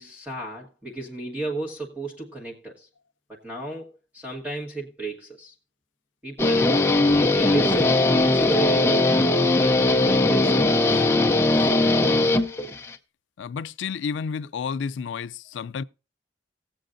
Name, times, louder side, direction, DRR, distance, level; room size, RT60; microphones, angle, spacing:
voice 1, 0.0-2.9 3.3-5.5 6.2-9.1 9.5-11.8, right 2 dB, 10° right, 1.3 m, -34 dB
Guitar, 6.4-12.9, left 2 dB, 15° left, 0.6 m, -20 dB
voice 2, 13.4-15.8, left 6 dB, 85° left, 0.4 m, -31 dB
18.5 x 7.7 x 2.5 m
head